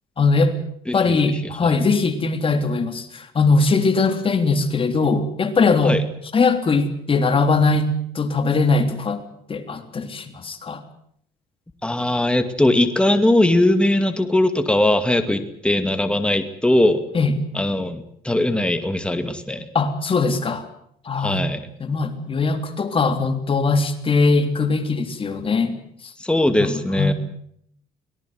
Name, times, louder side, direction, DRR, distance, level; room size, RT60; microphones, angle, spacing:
voice 1, 0.2-0.5 0.9-6.0 6.3-9.2 9.5-10.8 17.1-17.3 19.7-20.6 21.1-21.4 21.8-25.7 26.6-27.1, left 4 dB, 30° left, 7 dB, 3.4 m, -20 dB
voice 2, 0.9-1.8 5.8-6.0 11.8-17.0 17.5-19.7 21.2-21.7 26.2-27.1, left 1 dB, 5° left, 8 dB, 2.3 m, -20 dB
24.0 x 18.5 x 7.9 m, 0.66 s
cardioid pair, 110°, 17 cm